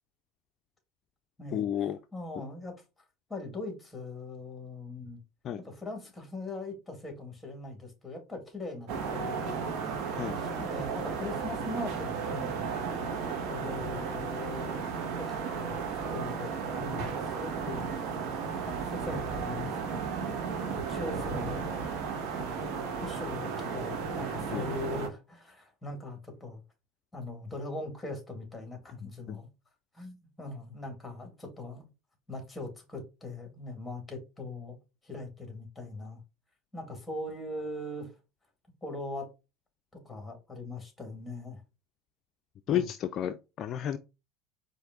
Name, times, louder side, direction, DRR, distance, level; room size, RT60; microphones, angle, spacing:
voice 1, 1.5-2.0 5.4-5.6 10.1-10.4 24.5-24.6 29.3-29.4 42.7-44.0, left 10 dB, 45° left, 0.4 m, -31 dB
voice 2, 2.1-2.7 3.3-5.2 5.6-9.7 10.3-12.9 13.3-14.8 15.2-15.8 16.1-18.1 18.7-20.1 20.7-22.0 22.3-22.7 23.0-26.6 27.1-29.5 29.9-31.9 32.3-34.8 35.0-36.2 36.7-38.1 38.8-39.3 40.0-41.6 42.7-42.9, left 2 dB, 10° left, 2.1 m, -41 dB
sound 1, 8.9-25.1, right 5 dB, 60° right, 1.2 m, -34 dB
4.7 x 2.6 x 3.7 m
hypercardioid pair, 90°, 0 cm